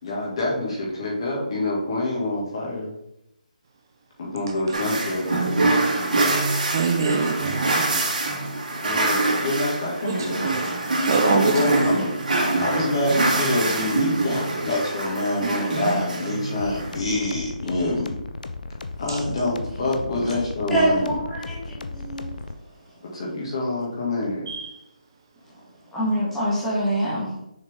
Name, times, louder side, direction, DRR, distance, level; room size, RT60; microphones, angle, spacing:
voice 1, 0.0-2.9 4.2-5.5 8.8-10.7 11.1-12.1 12.6-18.2 19.0-21.2 23.1-24.5, left 2 dB, 40° left, -3 dB, 2.1 m, -26 dB
sound 1, 4.7-17.0, right 2 dB, 70° right, 2.2 m, -25 dB
voice 2, 6.2-8.0 10.0-10.7 11.0-11.8 19.1-19.2 24.5-24.7, right 5 dB, 30° right, 4 dB, 0.5 m, -25 dB
sound 2, 16.6-22.5, left 3 dB, 70° left, 0.6 m, -35 dB
voice 3, 20.7-22.4 25.9-27.3, right 1 dB, 5° left, -9 dB, 1.5 m, -25 dB
6.6 x 4.5 x 3.6 m, 0.84 s
hypercardioid pair, 170°, 5 cm